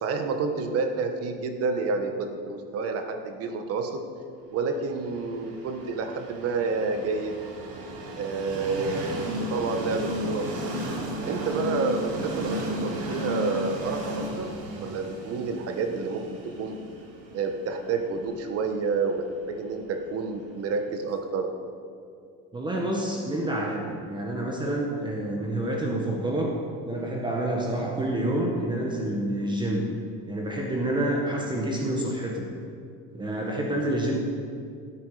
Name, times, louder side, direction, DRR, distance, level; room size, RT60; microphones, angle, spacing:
voice 1, 0.0-4.1 4.5-7.4 8.2-10.5 11.2-14.5 14.8-16.8 17.3-21.5, right 4 dB, 45° right, 6 dB, 1.3 m, -29 dB
Train, 4.9-20.8, equal, 70° right, 2.9 m, -34 dB
voice 2, 22.5-26.5 26.9-29.9 30.3-32.5 33.1-34.2, right 1 dB, 15° right, -1 dB, 1.4 m, -28 dB
17.0 x 8.9 x 5.0 m, 2.4 s
cardioid pair, 150°, 33 cm